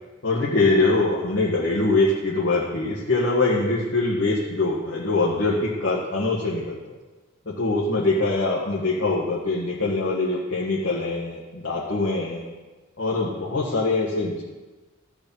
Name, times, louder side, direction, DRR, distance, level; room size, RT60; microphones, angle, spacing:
voice 1, 0.2-6.8 7.4-12.5 13.0-14.4, left 2 dB, 60° left, -5 dB, 1.5 m, -23 dB
14.5 x 5.0 x 5.5 m, 1.2 s
head